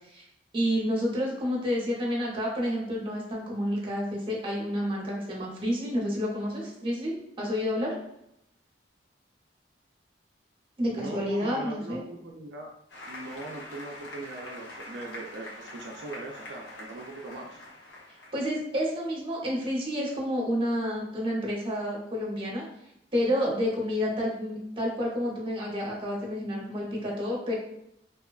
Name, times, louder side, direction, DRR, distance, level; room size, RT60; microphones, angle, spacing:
voice 1, 0.5-8.0 10.8-12.0 18.3-22.6 23.1-27.5, equal, 30° right, -3 dB, 0.8 m, -29 dB
voice 2, 10.9-12.7 13.1-17.6, right 2 dB, 75° right, -1 dB, 0.4 m, -40 dB
Applause, 12.9-18.6, left 1 dB, 85° left, 0.8 m, -44 dB
2.8 x 2.2 x 2.3 m, 0.78 s
head